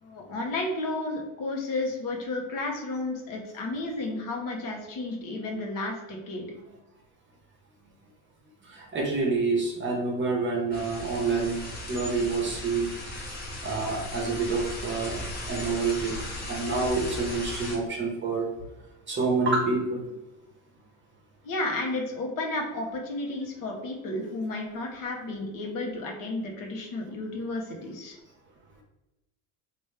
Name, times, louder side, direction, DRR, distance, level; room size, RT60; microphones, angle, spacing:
voice 1, 0.0-6.4 21.4-28.2, left 2 dB, 55° left, 1 dB, 1.0 m, -32 dB
voice 2, 8.6-12.9 13.6-16.2 16.5-18.5 19.1-20.1, right 3 dB, 30° right, 0 dB, 0.9 m, -28 dB
sound 1, 10.7-17.8, left 1 dB, 25° left, 1.1 m, -37 dB
3.1 x 2.6 x 3.2 m, 0.98 s
supercardioid pair, 105°, 40 cm